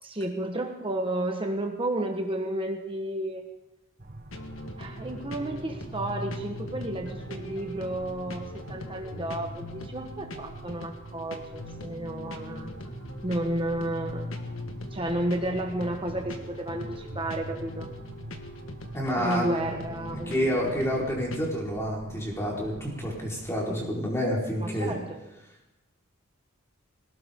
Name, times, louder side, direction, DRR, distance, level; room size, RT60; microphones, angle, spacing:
voice 1, 0.0-3.4 4.8-12.7 13.2-14.3 14.9-17.9 19.1-20.7 24.6-25.2, right 1 dB, 25° right, 3 dB, 1.4 m, -32 dB
sound 1, 4.0-23.6, right 1 dB, 45° right, 1.2 m, -44 dB
sound 2, 4.3-21.5, left 1 dB, 70° left, 1.6 m, -41 dB
voice 2, 18.9-19.5 20.1-25.0, equal, 15° left, -3 dB, 4.6 m, -29 dB
20.5 x 18.5 x 3.8 m, 0.98 s
head